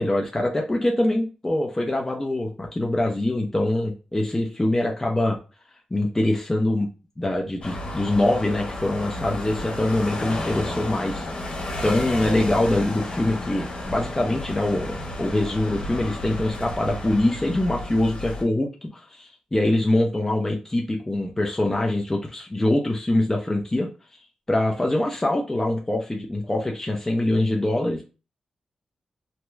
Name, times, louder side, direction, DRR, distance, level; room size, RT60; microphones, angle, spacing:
voice 1, 0.0-5.4 5.9-6.9 7.2-11.3 11.8-23.9 24.5-28.0, left 1 dB, 15° left, 0 dB, 0.6 m, -24 dB
sound 1, 7.6-18.4, left 1 dB, 55° left, 1.3 m, -32 dB
3.1 x 2.8 x 2.3 m, 0.32 s
wide cardioid pair, 105°, 2 cm